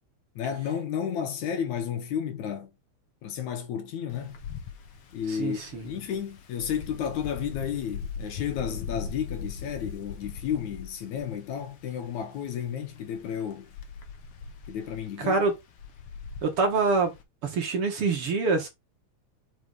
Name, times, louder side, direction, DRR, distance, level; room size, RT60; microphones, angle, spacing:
voice 1, 0.4-2.7 3.2-4.4 5.1-13.7 14.7-15.4, left 8 dB, 75° left, 2.7 m, -32 dB
Wind, 4.1-17.2, left 6 dB, 55° left, 2.0 m, -41 dB
voice 2, 5.3-5.9 15.2-15.5 16.4-17.1 17.4-18.7, right 4 dB, 50° right, 2.2 m, -25 dB
6.0 x 5.0 x 4.6 m
omnidirectional pair, 3.4 m